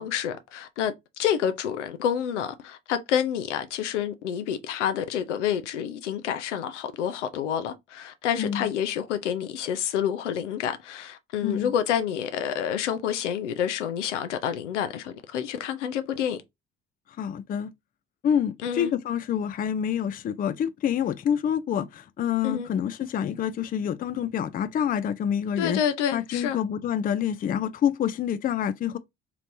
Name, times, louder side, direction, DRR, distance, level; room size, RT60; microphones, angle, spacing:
voice 1, 0.0-16.4 18.6-18.9 22.4-22.7 25.6-26.6, left 9 dB, 85° left, 0.5 m, -28 dB
voice 2, 17.2-17.7 18.2-25.8 26.1-29.0, left 9 dB, 25° left, 0.4 m, -27 dB
3.1 x 2.9 x 2.6 m
hypercardioid pair, 50°, 35 cm